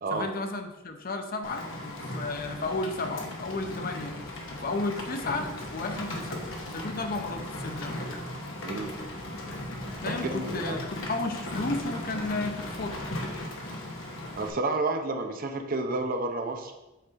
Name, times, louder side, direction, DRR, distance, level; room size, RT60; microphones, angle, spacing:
voice 1, 0.1-4.2 4.5-6.4 6.7-8.0 10.0-13.0, left 3 dB, 45° left, 6 dB, 0.7 m, -33 dB
Rain, 1.4-14.5, left 1 dB, 65° left, 1.1 m, -37 dB
voice 2, 10.1-10.8 14.4-16.7, right 2 dB, 45° right, 5 dB, 0.7 m, -30 dB
7.9 x 4.8 x 3.6 m, 1.0 s
head